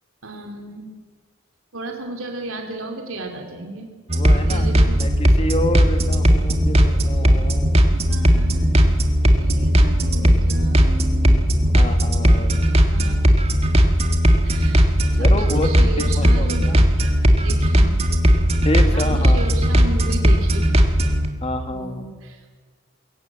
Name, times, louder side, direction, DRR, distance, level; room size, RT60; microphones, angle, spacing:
voice 1, 0.2-0.9 1.7-3.9 4.4-5.0 7.9-11.4 12.9-13.1 14.4-17.1 17.4-18.1 18.9-20.6 21.7-22.6, right 2 dB, 90° right, 3 dB, 2.9 m, -34 dB
voice 2, 4.1-7.8 11.7-12.8 15.1-15.7 16.0-16.8 18.6-19.5 21.4-22.0, left 1 dB, 30° left, 7 dB, 1.6 m, -28 dB
sound 1, 4.1-21.3, equal, 30° right, 1.9 m, -17 dB
22.0 x 17.5 x 7.5 m, 1.5 s
head